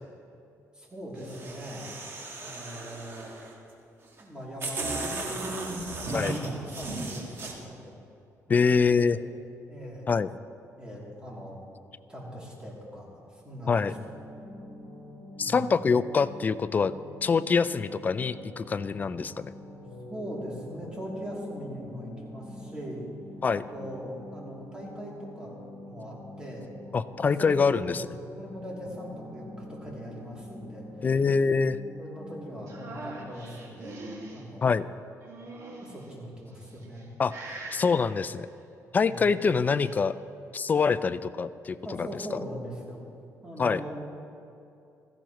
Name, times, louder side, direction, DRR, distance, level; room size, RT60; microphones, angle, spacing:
voice 1, 0.7-1.9 2.4-3.3 4.2-7.9 8.5-9.0 9.7-10.1 10.8-11.6 12.1-14.0 15.4-15.7 20.1-23.1 23.7-25.6 25.8-26.7 27.2-27.8 28.4-31.1 32.0-34.0 34.3-34.7 35.8-37.1 39.1-39.3 41.8-43.0 43.4-44.0, equal, 15° right, -4 dB, 2.9 m, -41 dB
sound 1, 1.2-3.5 4.2-4.3 4.6-7.5, right 2 dB, 40° right, 1.7 m, -35 dB
voice 2, 8.5-9.2 10.1-10.3 13.7-13.9 15.4-16.9 17.2-19.5 23.4-23.6 26.9-28.1 31.0-31.8 34.6-34.9 37.2-37.3 37.7-38.5 38.9-40.1 40.5-42.1 43.6-43.8, left 5 dB, 30° left, 14 dB, 0.3 m, -25 dB
sound 2, 13.8-33.3, left 1 dB, 50° left, 3.5 m, -45 dB
sound 3, 32.7-34.4 35.2-36.1 36.7-37.0 37.3-37.9 39.2-40.0, right 2 dB, 60° right, 2.0 m, -42 dB
16.5 x 14.5 x 3.1 m, 2.7 s
cardioid pair, 140°, 6 cm